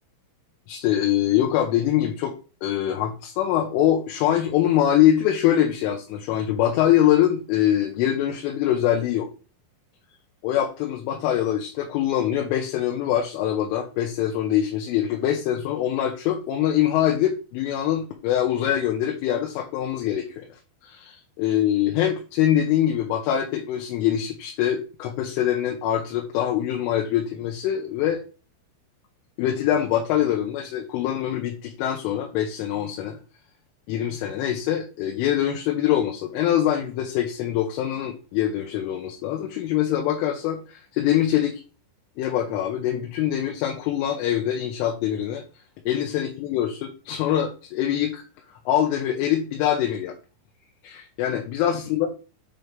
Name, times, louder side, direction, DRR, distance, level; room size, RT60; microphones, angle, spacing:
voice 1, 0.7-2.3 2.6-9.3 10.4-20.5 20.8-28.2 29.4-33.2 33.9-41.6 42.2-45.4 45.9-48.2 48.7-50.1 50.8-52.1, left 11 dB, 80° left, 1 dB, 3.3 m, -24 dB
8.0 x 3.0 x 5.2 m, 0.34 s
omnidirectional pair, 5.8 m